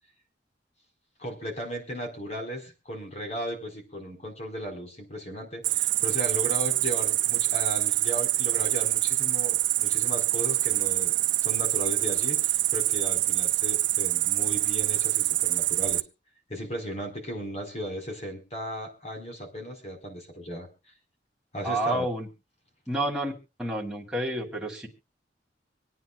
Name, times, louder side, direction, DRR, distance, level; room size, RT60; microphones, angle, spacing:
voice 1, 1.2-11.1 11.4-16.0 16.5-20.7 21.5-22.1, equal, 40° left, 3 dB, 4.6 m, -36 dB
Cricket, 5.6-16.0, right 16 dB, 85° right, 0.6 m, -25 dB
voice 2, 21.6-22.3 22.9-23.3 23.6-24.9, right 1 dB, 5° right, -2 dB, 2.9 m, -29 dB
26.0 x 9.2 x 2.4 m, 0.29 s
head